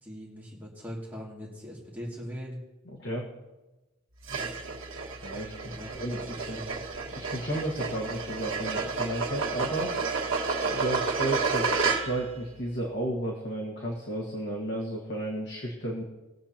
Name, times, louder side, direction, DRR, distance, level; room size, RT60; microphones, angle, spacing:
voice 1, 0.0-2.6 5.7-6.0 6.3-6.9, equal, 10° right, -5 dB, 2.3 m, -41 dB
voice 2, 2.9-3.3 5.2-6.6 7.1-10.0 10.6-16.0, right 1 dB, 55° left, -1 dB, 1.7 m, -33 dB
sound 1, 4.2-12.3, right 4 dB, 70° right, 1.6 m, -31 dB
21.0 x 7.8 x 2.9 m, 1.1 s
head